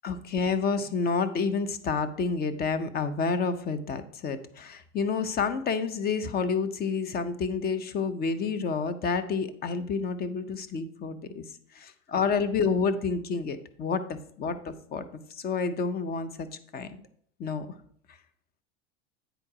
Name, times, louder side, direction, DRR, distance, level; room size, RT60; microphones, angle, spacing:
voice 1, 0.0-11.4 11.7-14.0 14.4-16.5 16.7-16.9 17.4-17.7 18.1-18.2, left 5 dB, 25° left, 12 dB, 0.7 m, -29 dB
9.0 x 4.4 x 4.8 m, 0.63 s
supercardioid pair, 135°, 37 cm